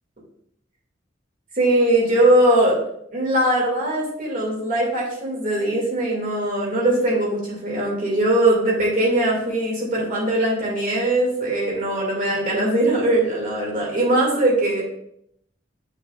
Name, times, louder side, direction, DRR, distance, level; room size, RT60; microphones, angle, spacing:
voice 1, 1.5-2.8 3.1-14.8, right 1 dB, 45° right, -3 dB, 2.1 m, -20 dB
6.5 x 6.2 x 2.4 m, 0.73 s
head